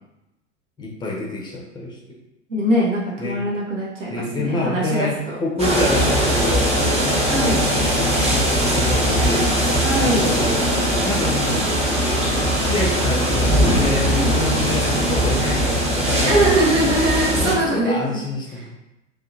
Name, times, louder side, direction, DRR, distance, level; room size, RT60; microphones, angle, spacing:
voice 1, 0.8-2.0 3.2-3.4 4.1-5.1 5.4-6.8 7.0-9.5 10.0-10.6 11.0-11.7 12.6-16.7 17.4-18.7, left 2 dB, 10° left, -2 dB, 0.5 m, -27 dB
voice 2, 2.5-5.4 7.3-7.6 9.8-10.3 14.0-14.4 16.2-18.2 18.5-18.7, right 1 dB, 70° right, -4 dB, 0.9 m, -22 dB
sound 1, 5.6-17.5, equal, 15° right, 0.8 m, -20 dB
2.7 x 2.2 x 2.5 m, 0.94 s
figure-of-eight pair, 80°, 38 cm